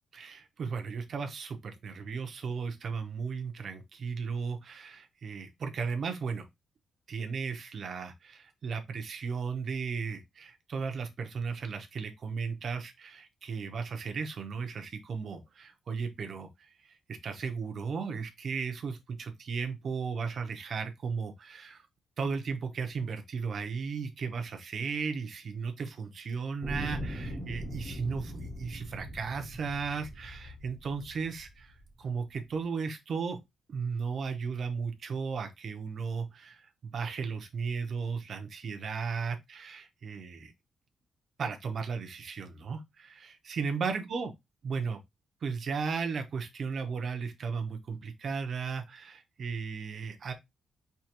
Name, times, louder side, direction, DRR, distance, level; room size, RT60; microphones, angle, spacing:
voice 1, 0.1-6.5 7.1-16.5 16.9-21.9 22.2-33.4 33.7-40.5 41.4-44.3 44.6-45.0 45.4-50.3, right 5 dB, 45° right, 0.7 m, -35 dB
sound 1, 26.6-31.9 32.6-32.7, equal, 5° left, 0.8 m, -40 dB
4.6 x 3.0 x 2.9 m
wide cardioid pair, 180°, 0 cm